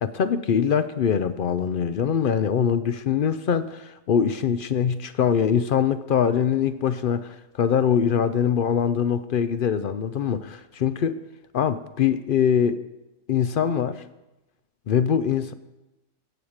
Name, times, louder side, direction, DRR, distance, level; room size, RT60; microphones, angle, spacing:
voice 1, 0.0-11.2 11.5-12.8 13.3-14.0 14.9-15.5, left 8 dB, 65° left, 13 dB, 0.5 m, -23 dB
15.0 x 8.6 x 6.4 m, 1.0 s
omnidirectional pair, 1.4 m